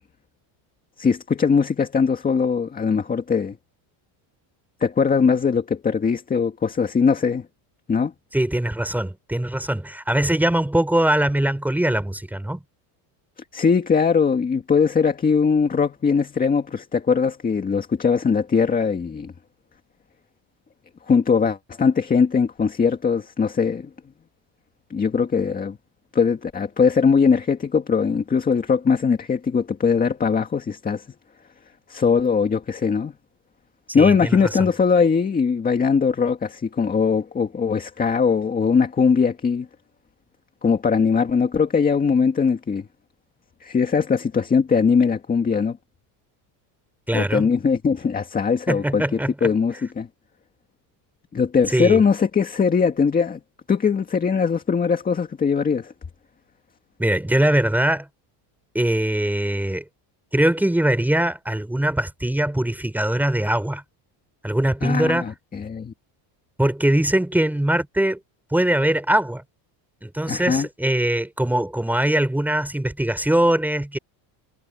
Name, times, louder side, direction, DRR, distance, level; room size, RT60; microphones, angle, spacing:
voice 1, 1.0-3.6 4.8-7.5 7.9-8.1 13.5-19.3 21.1-23.9 24.9-25.8 26.1-31.1 31.9-33.1 33.9-39.7 40.6-42.9 43.6-45.8 47.1-49.0 49.4-50.1 51.3-53.4 53.7-55.9 64.8-65.9 70.3-70.7, left 5 dB, 15° left, 1.9 m, -20 dB
voice 2, 8.3-12.6 33.9-34.4 47.1-47.5 48.7-49.5 51.7-52.0 57.0-58.1 58.7-59.8 60.3-63.8 64.4-65.3 66.6-68.2 68.5-69.4 70.0-74.0, right 1 dB, 5° right, 4.7 m, -22 dB
cardioid pair, 170°, 49 cm